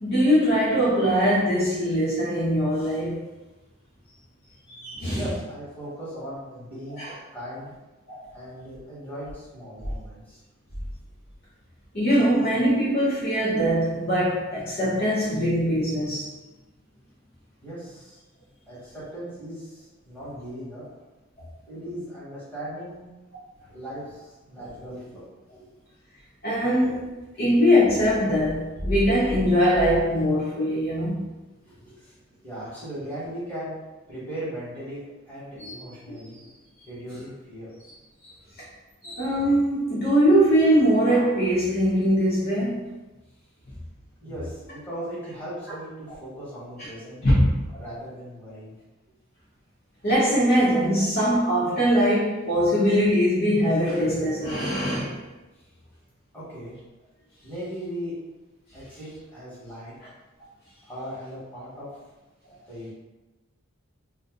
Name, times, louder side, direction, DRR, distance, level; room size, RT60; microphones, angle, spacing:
voice 1, 0.0-3.2 4.7-5.2 7.0-7.1 8.1-8.2 9.8-9.9 11.9-16.3 24.6-24.7 26.4-27.1 27.4-31.3 35.6-35.8 36.1-36.2 39.0-42.8 45.7-45.8 46.1-46.2 47.2-47.5 50.0-55.2, equal, 45° left, -7 dB, 0.7 m, -22 dB
voice 2, 5.1-7.8 8.3-10.4 17.6-18.2 18.7-20.8 21.7-23.0 23.7-25.8 31.6-33.7 34.1-36.4 36.8-37.7 44.2-47.2 47.8-48.7 55.5-55.6 56.3-56.7 57.4-58.2 58.7-59.9 60.8-61.9 62.7-62.9, equal, 10° left, -10 dB, 1.3 m, -38 dB
2.6 x 2.3 x 3.7 m, 1.1 s
head